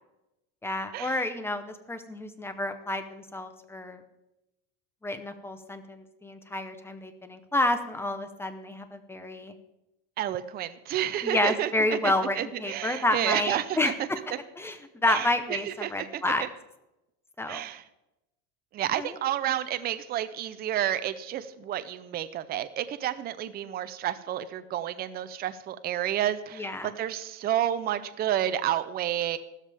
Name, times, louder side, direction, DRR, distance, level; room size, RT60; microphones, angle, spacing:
voice 1, 0.6-4.0 5.0-9.5 11.2-14.2 14.6-16.4 17.4-17.7 19.0-19.2 26.6-26.9, left 2 dB, 5° left, 9 dB, 0.8 m, -30 dB
voice 2, 10.2-13.9 15.1-15.3 15.7-16.2 17.5-17.8 18.7-29.4, right 11 dB, 25° right, 12 dB, 0.6 m, -30 dB
14.5 x 13.0 x 3.5 m, 0.92 s
supercardioid pair, 145°, 38 cm